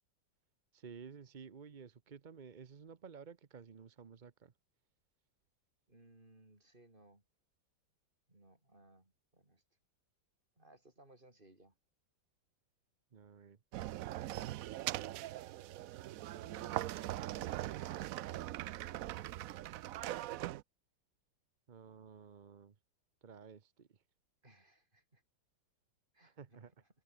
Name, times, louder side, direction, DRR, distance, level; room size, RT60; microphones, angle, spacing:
voice 1, 0.7-4.5 13.1-13.6 21.7-22.7 23.2-23.9 26.2-26.7, right 6 dB, 40° right, 0.6 m, -53 dB
voice 2, 5.9-7.2 8.3-9.6 10.6-11.7 24.4-25.2 26.1-26.9, right 1 dB, 25° right, 5.4 m, -63 dB
sound 1, 13.7-20.6, right 14 dB, 75° right, 0.7 m, -41 dB
open air
omnidirectional pair, 2.0 m